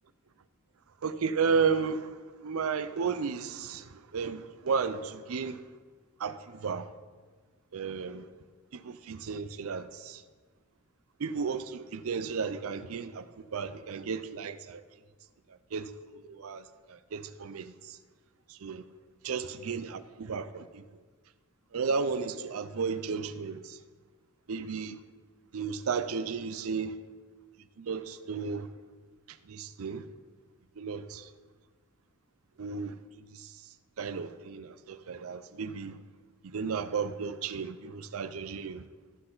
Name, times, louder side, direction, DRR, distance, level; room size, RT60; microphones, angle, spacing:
voice 1, 1.0-2.2 2.4-5.6 6.2-6.9 7.7-8.3 8.7-10.2 11.2-14.8 15.7-18.0 18.5-18.9 19.2-20.8 21.7-23.8 24.5-25.0 25.5-27.0 27.8-28.7 29.3-30.0 30.8-31.3 32.6-33.0 33.3-33.5 34.0-36.0 36.4-38.8, right 5 dB, 80° right, 0.5 m, -33 dB
14.0 x 5.7 x 4.0 m
head